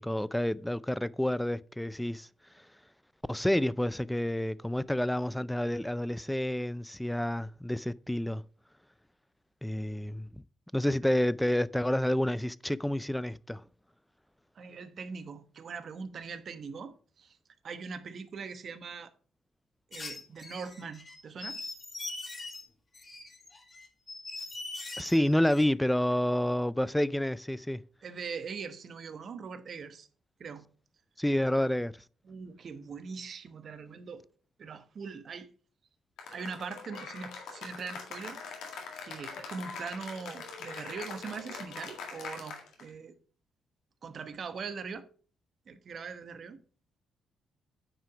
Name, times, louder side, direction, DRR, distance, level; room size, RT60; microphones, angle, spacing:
voice 1, 0.0-2.3 3.3-8.4 9.6-10.3 10.7-13.6 25.0-27.8 31.2-32.0, left 1 dB, 5° left, 0.3 m, -29 dB
voice 2, 14.5-17.4 17.6-19.1 19.9-21.6 28.0-30.1 30.4-30.6 32.2-34.3 34.6-35.5 36.3-38.4 39.0-43.1 44.0-45.0 45.7-46.6, right 5 dB, 50° right, 1.0 m, -41 dB
sound 1, 19.9-22.6 22.9-25.7, left 2 dB, 30° left, 1.9 m, -42 dB
Cheering / Applause, 36.2-42.9, left 5 dB, 80° left, 1.9 m, -43 dB
9.1 x 4.8 x 4.8 m
cardioid pair, 90°, 0 cm